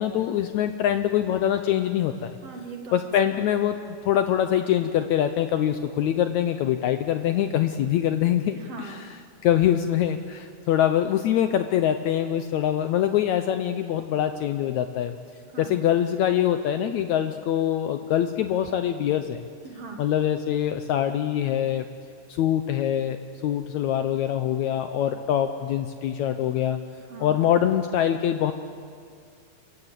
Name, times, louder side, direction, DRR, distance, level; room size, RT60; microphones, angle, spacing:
voice 1, 0.0-2.3 2.9-3.8 4.0-8.6 9.4-15.1 15.6-19.4 20.0-21.9 22.4-26.8 27.2-28.5, left 10 dB, 75° left, 8 dB, 1.8 m, -24 dB
voice 2, 2.4-3.4 8.5-9.1 15.5-15.9 19.6-20.1 27.0-27.4, right 4 dB, 55° right, 3 dB, 2.2 m, -40 dB
28.5 x 14.5 x 8.2 m, 2.2 s
omnidirectional pair, 3.9 m